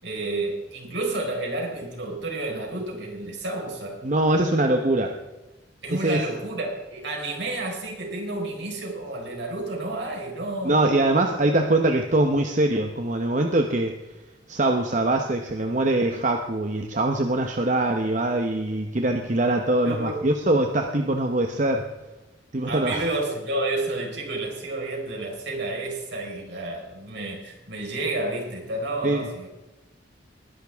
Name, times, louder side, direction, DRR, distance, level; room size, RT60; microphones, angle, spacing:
voice 1, 0.0-4.0 5.8-10.9 19.8-20.3 22.7-29.5, right 2 dB, 70° right, 0 dB, 4.5 m, -30 dB
voice 2, 4.0-5.2 6.0-6.3 10.6-13.9 14.5-21.9 22.5-23.0 29.0-29.3, right 2 dB, 40° right, 4 dB, 0.9 m, -23 dB
20.5 x 11.5 x 3.5 m, 1.1 s
head